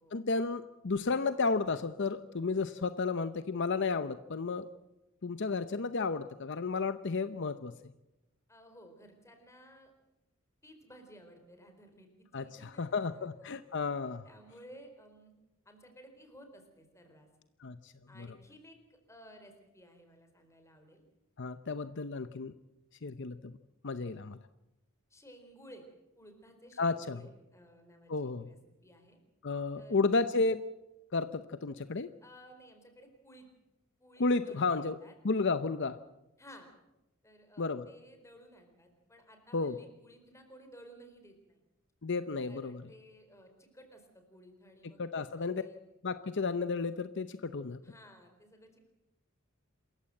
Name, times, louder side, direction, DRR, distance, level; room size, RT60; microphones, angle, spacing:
voice 1, 0.1-4.7 5.2-7.7 12.3-14.2 17.6-17.9 18.2-18.3 21.4-22.5 23.0-23.6 23.8-24.4 26.8-27.2 28.1-28.5 29.4-30.6 31.1-32.1 34.2-35.0 35.2-36.0 37.6-37.9 39.5-39.8 42.0-42.8 45.0-45.6 46.0-47.8, left 4 dB, 55° left, 12 dB, 0.7 m, -32 dB
voice 2, 8.5-9.9 10.6-13.5 14.2-15.3 15.6-17.3 18.1-21.0 25.1-25.8 26.2-29.2 29.8-30.0 32.2-33.5 34.0-35.1 36.4-36.7 37.2-41.6 42.5-45.8 47.8-48.9, equal, 15° left, 6 dB, 4.4 m, -56 dB
27.5 x 15.0 x 7.8 m, 0.98 s
head